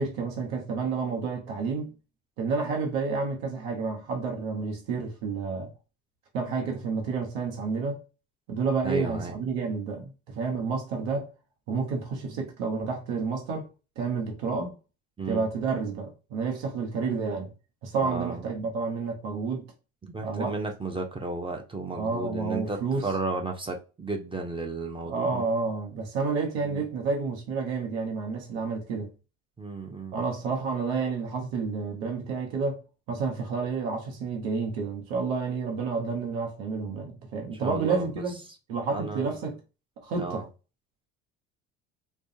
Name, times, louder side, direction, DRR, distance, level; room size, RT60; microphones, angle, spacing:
voice 1, 0.0-1.9 2.4-5.7 6.3-8.0 8.5-11.3 11.7-13.7 14.0-14.7 15.3-17.5 17.8-19.6 20.2-20.5 21.9-23.1 25.1-29.1 30.1-32.8 33.1-38.3 38.7-39.6 40.0-40.4, right 4 dB, 75° right, 0.9 m, -30 dB
voice 2, 8.8-9.4 15.2-15.5 18.0-18.5 20.0-25.5 26.7-26.8 29.6-30.2 37.6-38.2 38.9-39.3 40.2-40.4, right 3 dB, 15° right, 0.5 m, -33 dB
2.4 x 2.3 x 2.7 m
hypercardioid pair, 65°, 40 cm